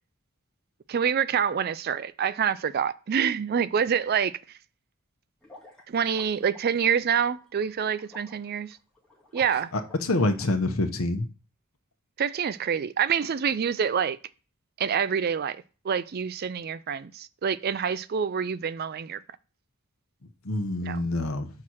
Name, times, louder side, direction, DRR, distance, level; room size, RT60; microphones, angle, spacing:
voice 1, 0.9-4.3 5.9-8.8 9.3-9.7 12.2-14.2 14.8-19.2 20.8-21.0, right 7 dB, 50° right, 0.4 m, -26 dB
sound 1, 5.4-10.4, left 2 dB, 5° left, 2.1 m, -52 dB
voice 2, 9.7-11.3 20.4-21.5, left 2 dB, 85° left, 1.0 m, -26 dB
5.8 x 4.3 x 6.2 m
head